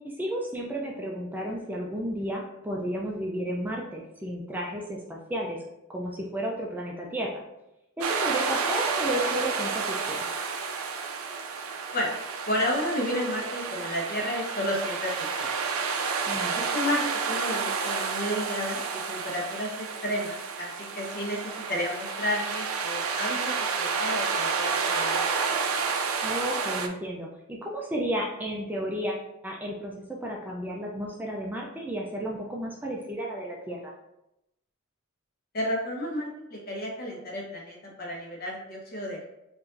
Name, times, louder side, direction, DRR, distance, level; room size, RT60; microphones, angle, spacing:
voice 1, 0.0-5.6 5.9-7.3 8.0-10.3 16.2-16.5 26.2-33.9, equal, 10° right, -2 dB, 0.4 m, -33 dB
sound 1, 8.0-26.9, right 5 dB, 85° right, 0.4 m, -30 dB
voice 2, 12.5-15.5 16.5-25.3 35.5-39.2, left 1 dB, 45° left, -2 dB, 1.0 m, -32 dB
4.7 x 2.6 x 2.5 m, 0.88 s
head